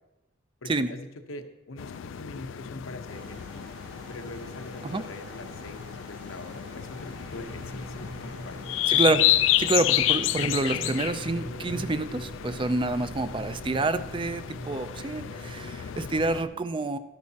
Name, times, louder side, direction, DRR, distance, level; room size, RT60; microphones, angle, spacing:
voice 1, 0.6-8.6 12.8-13.1 15.1-15.8 16.5-16.6, left 2 dB, 85° left, 6 dB, 0.9 m, -43 dB
sound 1, 1.8-16.4, left 13 dB, 70° left, 0.3 m, -30 dB
sound 2, 3.1-11.1, right 1 dB, 75° right, 2.7 m, -48 dB
sound 3, 7.2-16.5, equal, 50° right, 2.1 m, -42 dB
voice 2, 8.9-17.0, right 2 dB, 25° right, 13 dB, 0.4 m, -28 dB
12.5 x 11.0 x 2.8 m, 1.0 s
head